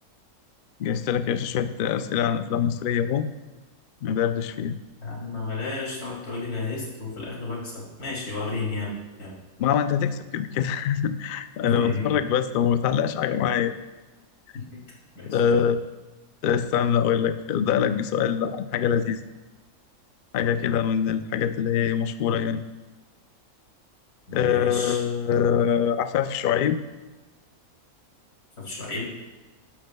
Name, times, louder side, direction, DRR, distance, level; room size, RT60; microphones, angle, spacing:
voice 1, 0.8-3.3 4.0-4.7 9.6-13.7 15.3-15.8 16.4-19.3 20.3-22.6 24.3-26.8, left 8 dB, 70° left, 11 dB, 0.5 m, -24 dB
voice 2, 5.0-8.9 9.2-9.3 11.6-12.1 14.7-14.8 15.1-15.6 24.3-25.0 28.6-29.1, left 3 dB, 90° left, -4 dB, 3.4 m, -32 dB
12.0 x 11.5 x 2.3 m, 1.2 s
omnidirectional pair, 1.5 m